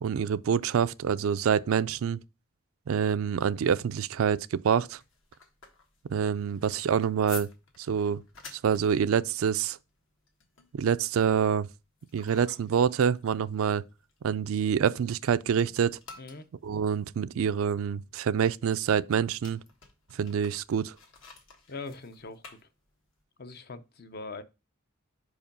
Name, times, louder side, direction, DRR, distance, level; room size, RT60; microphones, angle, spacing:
voice 1, 0.0-2.2 2.9-5.0 6.1-7.5 7.9-8.2 8.5-9.8 10.7-11.7 12.1-13.8 14.2-16.0 16.6-19.6 20.1-20.9, right 7 dB, 80° right, 0.4 m, -26 dB
sound 1, 4.7-15.2 15.5-23.2, left 5 dB, 65° left, 1.6 m, -51 dB
voice 2, 16.2-16.5 21.7-22.6 23.4-24.4, left 3 dB, 45° left, 0.6 m, -41 dB
5.3 x 4.9 x 5.2 m
head